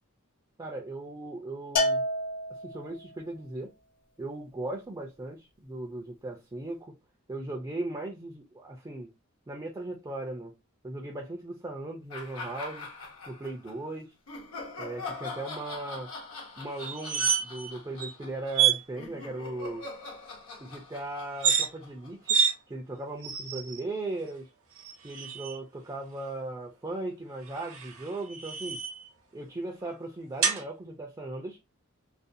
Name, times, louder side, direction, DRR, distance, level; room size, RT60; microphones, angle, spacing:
voice 1, 0.6-2.0 2.5-3.7 4.2-6.9 7.3-9.1 9.5-10.5 10.8-12.9 13.3-14.1 14.8-16.1 16.6-19.9 20.6-22.4 22.7-24.5 25.0-28.8 29.3-31.6, right 2 dB, 15° right, 0.4 m, -38 dB
Bell, 1.8-3.1, left 1 dB, 45° left, 0.6 m, -29 dB
sound 1, 12.1-13.7 14.3-22.5, left 3 dB, 70° left, 1.0 m, -43 dB
sound 2, 16.8-17.7 18.0-18.1 18.5-18.8 21.3-21.7 22.3-22.5 23.2-23.8 24.8-25.6 27.5-29.1 30.4-30.6, right 7 dB, 70° right, 0.8 m, -28 dB
2.5 x 2.2 x 2.6 m
head